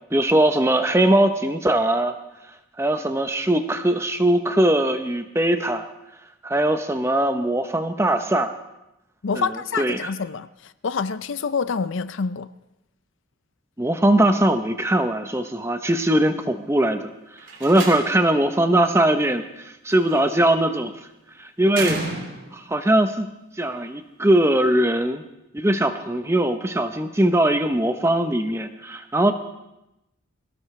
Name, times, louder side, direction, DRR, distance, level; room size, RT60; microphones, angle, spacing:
voice 1, 0.1-2.2 2.8-5.8 6.4-8.5 9.4-9.5 9.8-10.0 13.8-17.1 17.6-19.4 19.8-20.9 21.4-22.0 22.5-23.3 23.6-25.2 25.5-29.3, right 1 dB, 15° right, 0.8 m, -20 dB
voice 2, 9.2-12.5, left 5 dB, 65° left, 0.5 m, -27 dB
Slam, 17.4-18.4 19.9-20.3 21.7-22.7, right 3 dB, 60° right, 3.1 m, -32 dB
22.0 x 17.5 x 3.3 m
head